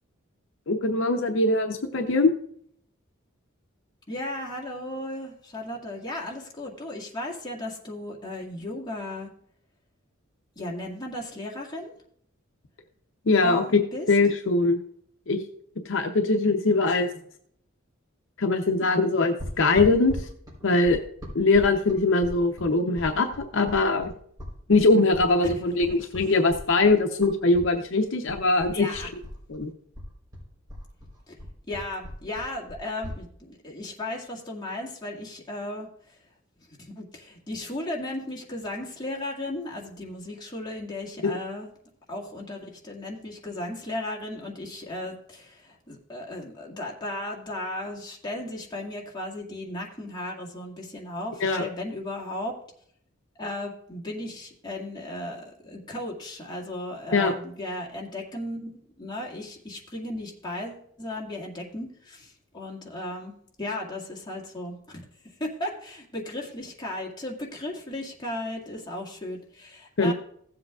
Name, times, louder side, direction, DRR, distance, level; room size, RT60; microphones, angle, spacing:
voice 1, 0.7-2.3 13.3-13.8 14.1-14.8 15.3-15.4 15.9-17.1 18.4-20.3 20.6-21.0 21.3-24.1 24.7-29.0 29.5-29.7 41.2-41.3 51.4-51.7 57.1-57.3 70.0-70.1, left 3 dB, 65° left, 5 dB, 0.7 m, -22 dB
voice 2, 4.1-9.3 10.6-11.9 13.4-14.1 16.9-17.0 25.9-26.3 28.7-29.1 31.3-31.4 31.7-35.9 37.0-41.7 42.1-52.6 53.4-64.8 65.4-70.1, left 1 dB, 20° left, -2 dB, 1.9 m, -35 dB
sound 1, 19.4-27.7 28.0-29.6 29.9-33.2, left 1 dB, 20° right, 3.8 m, -38 dB
16.0 x 7.7 x 2.4 m, 0.66 s
head